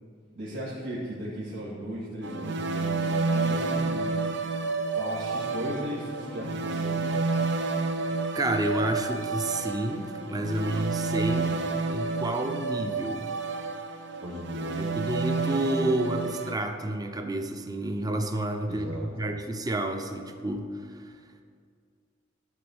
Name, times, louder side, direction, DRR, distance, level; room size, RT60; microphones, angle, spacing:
voice 1, 0.3-4.1 4.9-7.2 11.1-11.5 14.2-14.8 18.7-19.3, equal, 85° right, -10 dB, 2.2 m, -36 dB
sound 1, 2.2-16.5, right 3 dB, 65° right, 0.7 m, -30 dB
voice 2, 8.3-11.5 11.9-13.3 14.8-21.2, right 1 dB, 20° right, 5 dB, 0.7 m, -30 dB
12.5 x 4.3 x 7.9 m, 2.1 s
head